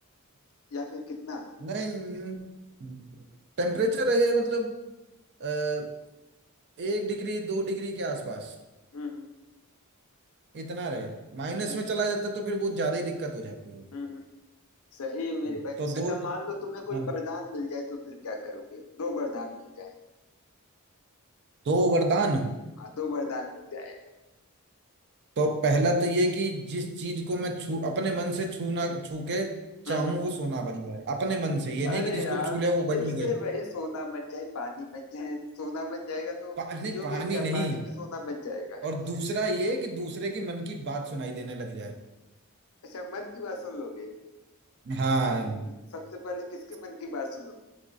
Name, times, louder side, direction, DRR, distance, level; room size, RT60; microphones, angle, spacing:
voice 1, 0.7-1.5 8.9-9.3 11.7-11.9 13.9-14.3 14.9-15.8 16.1-19.9 22.8-24.0 29.9-30.2 31.8-32.6 32.9-36.6 36.9-38.8 42.8-44.1 45.9-47.5, left 3 dB, 70° left, 3 dB, 0.5 m, -35 dB
voice 2, 1.6-2.5 2.8-3.0 3.6-4.7 5.4-5.9 6.8-8.5 10.5-13.8 15.8-16.1 16.9-17.1 21.7-22.5 25.4-29.6 29.8-33.3 36.6-37.8 38.8-42.0 44.9-45.7, right 2 dB, 50° right, 5 dB, 0.4 m, -29 dB
3.5 x 3.1 x 2.5 m, 1.0 s
head